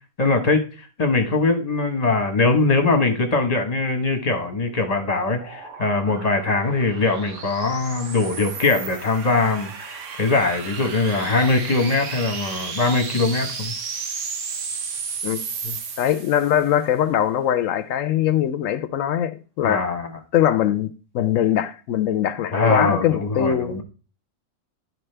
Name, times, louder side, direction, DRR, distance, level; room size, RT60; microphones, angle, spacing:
voice 1, 0.2-0.6 1.0-9.7 10.2-13.7 19.6-20.1 22.5-23.8, left 3 dB, 30° left, 1.2 m, -21 dB
sound 1, 4.4-16.7, right 5 dB, 70° right, 1.2 m, -34 dB
voice 2, 15.6-19.9 20.3-20.9 21.1-23.8, left 10 dB, 80° left, 1.0 m, -22 dB
11.0 x 4.7 x 3.3 m
omnidirectional pair, 1.4 m